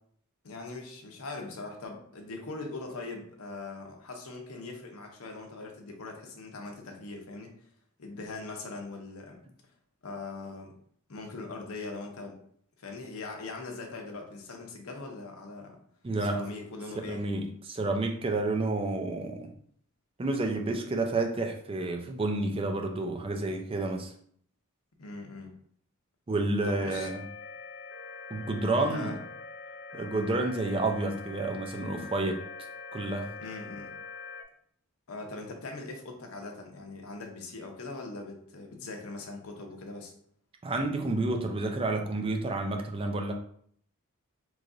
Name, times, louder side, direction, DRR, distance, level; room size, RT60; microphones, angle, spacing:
voice 1, 0.4-7.5 8.0-9.4 10.0-10.7 11.1-12.4 12.8-15.8 16.2-17.2 25.0-25.6 26.6-27.1 28.8-29.1 33.4-33.9 35.1-40.1, left 3 dB, 90° left, 2 dB, 0.7 m, -41 dB
voice 2, 16.0-16.5 17.1-19.5 20.2-24.1 26.3-27.2 28.3-29.1 29.9-32.4 32.9-33.3 40.6-43.3, right 2 dB, 25° right, 3 dB, 0.4 m, -30 dB
sound 1, 26.6-34.4, left 4 dB, 55° left, 0.4 m, -44 dB
3.1 x 2.5 x 3.8 m, 0.62 s
head